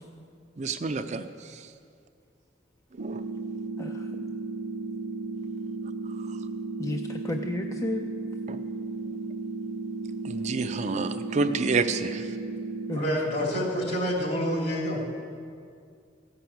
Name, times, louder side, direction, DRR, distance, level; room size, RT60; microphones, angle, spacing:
voice 1, 0.6-1.7 2.9-3.2 6.2-6.4 8.5-8.6 10.2-12.4, right 4 dB, 40° right, 8 dB, 0.5 m, -29 dB
sound 1, 3.0-13.0, right 3 dB, 85° right, 0.6 m, -34 dB
voice 2, 3.8-4.2 6.8-8.1 12.9-13.1 13.6-13.7, left 2 dB, 15° left, 4 dB, 0.4 m, -32 dB
voice 3, 12.9-15.0, equal, 60° left, -2 dB, 3.0 m, -27 dB
15.0 x 5.8 x 7.8 m, 2.3 s
head